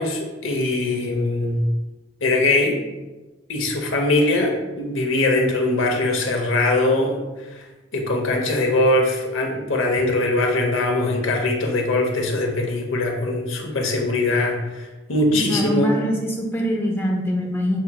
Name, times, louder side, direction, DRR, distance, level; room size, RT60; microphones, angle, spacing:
voice 1, 0.0-1.7 2.2-2.8 3.5-7.7 7.9-16.0, left 2 dB, 80° left, 1 dB, 0.8 m, -21 dB
voice 2, 15.3-17.8, equal, 10° left, 0 dB, 0.5 m, -24 dB
6.5 x 2.9 x 2.2 m, 1.1 s
head